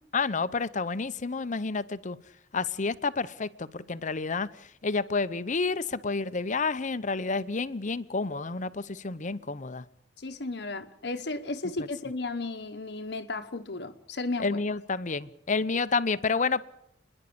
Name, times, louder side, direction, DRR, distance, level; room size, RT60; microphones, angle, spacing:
voice 1, 0.1-2.2 2.5-4.5 4.8-9.8 14.4-16.6, left 4 dB, 45° left, 0.8 m, -29 dB
voice 2, 10.2-14.6, left 3 dB, 65° left, 1.1 m, -34 dB
30.0 x 11.0 x 8.6 m
head